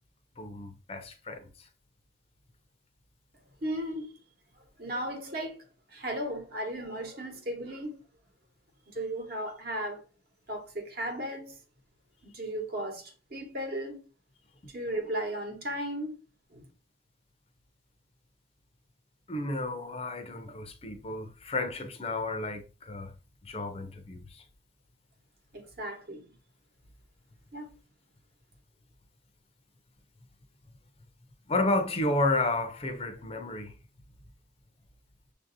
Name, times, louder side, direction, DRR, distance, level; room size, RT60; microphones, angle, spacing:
voice 1, 0.4-1.5 19.3-23.1 23.4-24.4 31.5-33.7, left 2 dB, 30° left, 0.5 m, -31 dB
voice 2, 3.6-4.2 4.8-5.6 5.9-8.0 8.9-10.0 10.5-11.6 12.2-14.0 14.7-16.2 16.5-16.6 25.5-26.2 27.5-27.7, right 1 dB, 50° right, 1.0 m, -35 dB
6.5 x 2.6 x 2.6 m
head